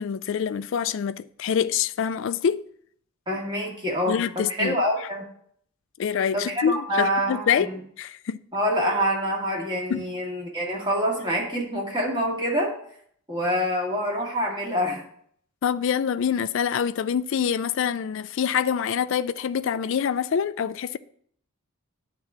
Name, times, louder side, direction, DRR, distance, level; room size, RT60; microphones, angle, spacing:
voice 1, 0.0-2.6 4.1-4.7 6.0-7.7 8.0-8.4 9.9-10.0 15.6-21.0, left 7 dB, 60° left, 0.3 m, -25 dB
voice 2, 3.3-5.3 6.3-7.8 8.5-12.7 13.3-15.0, equal, 20° right, 2.0 m, -26 dB
9.2 x 3.8 x 7.1 m
head